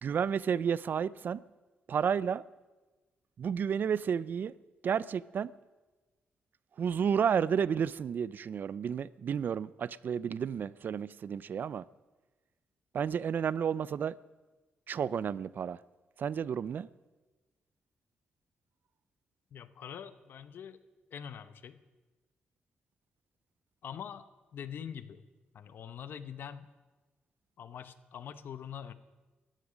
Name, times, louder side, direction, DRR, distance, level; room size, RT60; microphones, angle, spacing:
voice 1, 0.0-1.4 1.9-2.4 3.4-4.5 4.8-5.5 6.8-11.8 12.9-14.1 14.9-15.8 16.2-16.9, right 7 dB, 60° right, 0.5 m, -31 dB
voice 2, 19.5-20.8 21.1-21.8 23.8-24.3 24.5-25.2 25.5-26.7 27.6-28.9, left 8 dB, 70° left, 0.9 m, -44 dB
18.5 x 14.0 x 5.1 m
cardioid pair, 85°, 4 cm